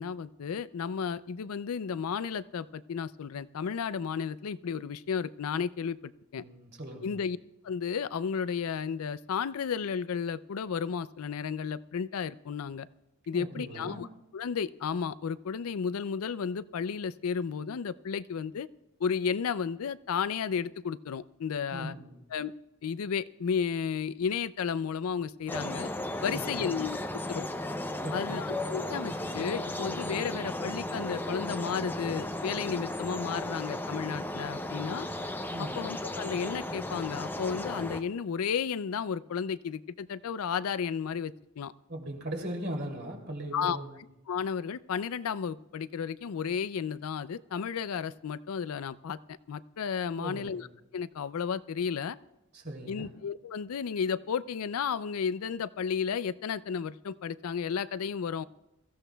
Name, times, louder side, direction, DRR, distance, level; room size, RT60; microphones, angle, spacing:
voice 1, 0.0-6.4 7.0-7.4 7.6-12.9 13.3-14.1 14.3-18.7 19.0-21.9 22.3-22.5 22.8-25.9 26.2-27.5 28.1-35.1 35.6-41.7 43.5-43.8 44.3-50.7 50.9-52.2 52.9-58.4, left 6 dB, 80° left, 16 dB, 0.4 m, -33 dB
voice 2, 6.4-7.2 13.3-14.0 21.7-22.2 26.3-26.8 28.0-28.5 35.5-35.9 41.9-44.0 50.1-50.6 52.5-53.1, right 1 dB, 50° right, 1 dB, 2.8 m, -39 dB
sound 1, 25.5-38.0, left 1 dB, 10° left, 0.5 m, -35 dB
23.0 x 14.5 x 2.3 m, 0.95 s
head